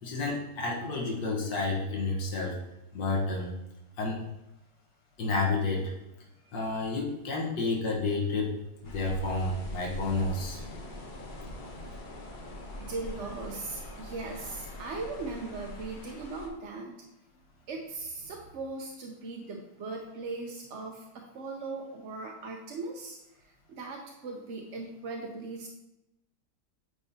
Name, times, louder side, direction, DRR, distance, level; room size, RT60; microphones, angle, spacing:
voice 1, 0.0-2.6 2.9-3.5 4.0-4.2 5.2-5.9 6.5-8.5 8.8-10.6 11.4-11.5, left 3 dB, 75° left, -2 dB, 1.9 m, -30 dB
sound 1, 8.8-16.5, left 1 dB, 35° left, 0.8 m, -42 dB
voice 2, 12.8-16.9 17.7-23.2 23.4-25.7, right 3 dB, 55° right, 0 dB, 0.8 m, -39 dB
8.9 x 4.8 x 2.8 m, 0.91 s
omnidirectional pair, 1.9 m